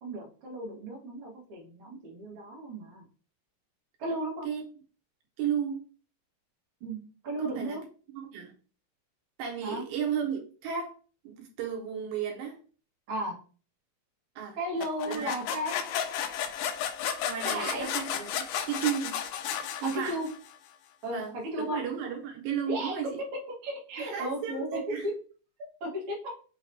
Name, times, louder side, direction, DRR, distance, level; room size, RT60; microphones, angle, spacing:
voice 1, 0.0-3.0 4.0-4.5 6.8-7.0 7.2-7.8 9.6-9.8 13.1-13.3 14.5-15.8 17.4-17.9 19.8-20.3 21.0-21.8 22.7-23.3 23.6-25.1 25.8-26.2, equal, 50° right, 1.7 m, -35 dB
voice 2, 5.4-5.8 7.4-7.8 8.1-8.5 9.4-11.0 11.2-12.6 14.4-14.6 15.1-15.3 17.3-19.2 19.8-20.2 21.1-23.1 24.0-25.1, right 8 dB, 80° right, 2.4 m, -33 dB
sound 1, 14.8-20.5, left 9 dB, 85° left, 1.9 m, -33 dB
5.8 x 3.0 x 2.7 m
omnidirectional pair, 4.4 m